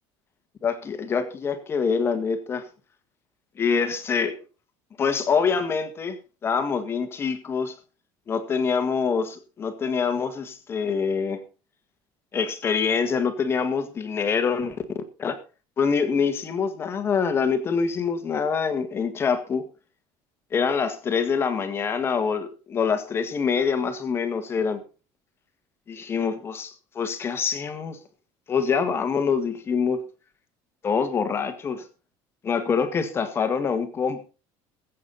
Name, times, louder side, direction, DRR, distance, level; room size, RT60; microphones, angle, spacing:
voice 1, 0.6-2.7 3.6-4.3 5.0-6.2 6.4-7.8 8.3-11.4 12.3-14.8 15.2-15.4 15.8-19.7 20.5-24.8 25.9-28.0 28.5-30.0 30.8-31.9 32.4-34.2, left 6 dB, 20° left, 1.7 m, -25 dB
20.5 x 8.6 x 4.1 m
cardioid pair, 180°, 11 cm